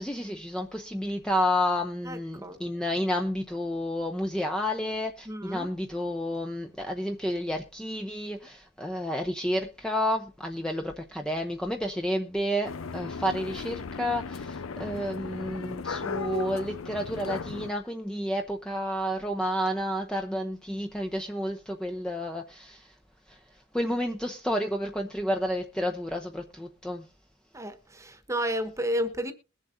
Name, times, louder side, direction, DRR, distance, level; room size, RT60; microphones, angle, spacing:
voice 1, 0.0-22.9 23.3-23.4 23.7-27.0, equal, 5° left, 0.7 m, -30 dB
voice 2, 2.0-2.6 5.2-5.7 27.5-29.3, equal, 15° right, 1.2 m, -32 dB
sound 1, 12.6-17.7, left 4 dB, 90° left, 0.7 m, -36 dB
21.5 x 7.3 x 2.6 m
head